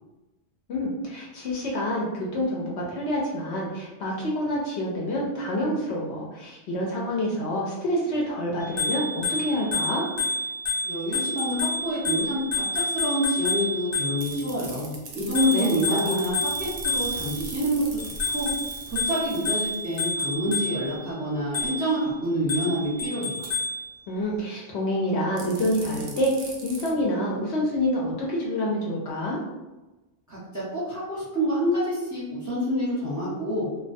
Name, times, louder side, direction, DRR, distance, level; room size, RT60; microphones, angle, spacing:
voice 1, 0.7-10.1 15.5-16.2 24.1-29.4, equal, 65° left, -3 dB, 0.8 m, -27 dB
Bicycle bell, 8.6-14.5 15.3-17.4 18.0-21.0 21.5-22.0 22.5-23.8, left 2 dB, 35° left, 0.5 m, -29 dB
voice 2, 10.8-17.8 18.3-18.5 18.9-23.4 30.3-33.7, equal, 15° right, -9 dB, 0.7 m, -27 dB
sound 1, 14.2-20.1 23.4-23.5 25.4-26.9, right 4 dB, 60° right, 0.6 m, -40 dB
2.2 x 2.2 x 2.5 m, 1.1 s
omnidirectional pair, 1.3 m